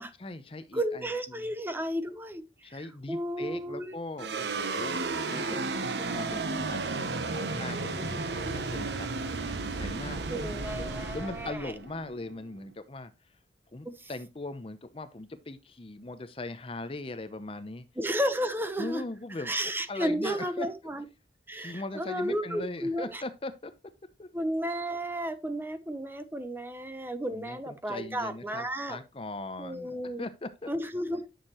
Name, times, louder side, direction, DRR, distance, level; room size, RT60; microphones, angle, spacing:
voice 1, 0.2-1.4 2.6-13.1 13.7-17.9 18.8-20.7 21.5-23.7 24.2-24.3 27.3-30.7, left 2 dB, 30° left, 0.7 m, -40 dB
voice 2, 0.7-2.4 2.7-4.0 10.2-11.7 18.0-19.0 19.4-21.0 21.5-23.2 24.3-29.0 29.6-30.3 30.7-31.3, equal, 10° right, 0.9 m, -33 dB
sound 1, 4.2-12.7, right 3 dB, 75° right, 1.0 m, -33 dB
10.0 x 6.5 x 3.0 m
head